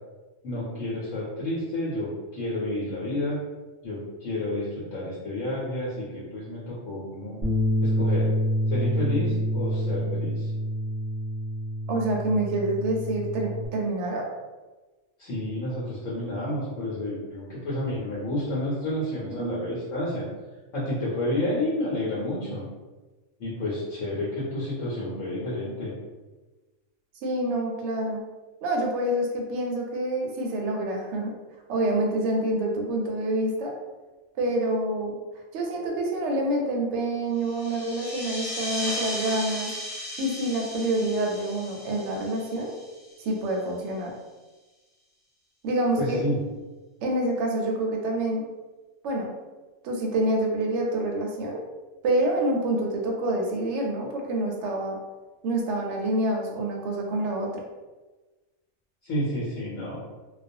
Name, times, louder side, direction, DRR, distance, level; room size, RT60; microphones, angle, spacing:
voice 1, 0.4-3.4 3.8-7.4 7.8-8.3 8.7-10.5 15.2-20.2 20.7-22.6 23.4-25.9 46.0-46.4 59.0-60.0, left 1 dB, 70° left, -7 dB, 1.1 m, -30 dB
Bass guitar, 7.4-13.7, equal, 20° right, 0.8 m, -27 dB
voice 2, 11.9-14.3 19.3-19.8 27.2-28.2 28.6-31.3 31.7-33.7 34.3-35.2 35.5-39.7 40.2-42.7 43.2-44.1 45.6-46.2 47.0-48.4 49.0-49.3 49.8-51.6 52.0-55.0 55.4-57.5, right 1 dB, 65° right, 0 dB, 0.8 m, -27 dB
sound 1, 37.4-43.5, left 1 dB, 40° left, 1.0 m, -36 dB
2.4 x 2.2 x 2.6 m, 1.2 s
omnidirectional pair, 1.4 m